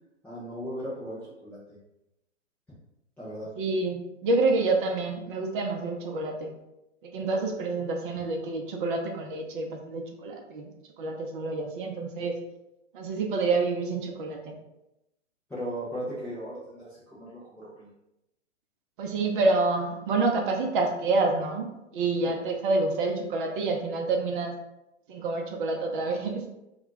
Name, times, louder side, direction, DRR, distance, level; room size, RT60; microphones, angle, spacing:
voice 1, 0.2-1.8 3.2-3.5 15.5-17.9, equal, 5° left, -13 dB, 0.4 m, -37 dB
voice 2, 3.6-6.5 7.0-10.7 11.0-12.4 12.9-14.5 19.0-24.5 25.1-26.5, right 3 dB, 45° right, 2 dB, 0.6 m, -28 dB
2.3 x 2.1 x 3.9 m, 0.89 s
hypercardioid pair, 120°, 37 cm